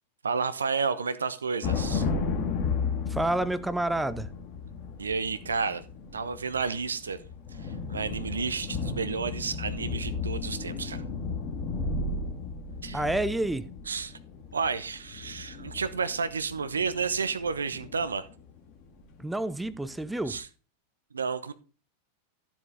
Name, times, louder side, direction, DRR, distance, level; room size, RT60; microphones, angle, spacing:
voice 1, 0.2-2.1 5.0-5.8 6.1-7.2 7.6-11.0 12.8-13.0 13.9-14.2 14.5-18.3 20.3-20.5 21.1-21.5, right 5 dB, 75° right, 0.9 m, -31 dB
sound 1, 1.6-19.2 19.6-20.4, left 4 dB, 35° left, 2.2 m, -34 dB
voice 2, 3.1-4.3 12.9-13.7 19.2-20.4, right 1 dB, 5° right, 0.5 m, -29 dB
13.0 x 7.4 x 3.7 m
figure-of-eight pair, 90°, 0 cm